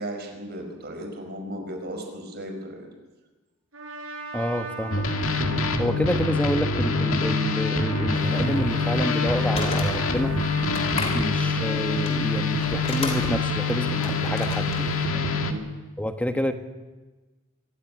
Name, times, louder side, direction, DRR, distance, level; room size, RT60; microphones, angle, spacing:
voice 1, 0.0-2.9 10.9-11.3 13.9-14.1 15.3-15.6, right 1 dB, 50° right, 4 dB, 5.1 m, -36 dB
Trumpet, 3.7-10.9, right 5 dB, 70° right, 6.3 m, -38 dB
voice 2, 4.3-5.0 5.8-10.3 11.1-15.3 16.0-16.5, equal, 5° left, 7 dB, 1.4 m, -28 dB
sound 1, 4.9-15.5, left 3 dB, 75° left, 2.0 m, -25 dB
sound 2, 8.1-15.0, left 2 dB, 30° left, 3.4 m, -35 dB
24.0 x 15.0 x 9.7 m, 1.2 s
head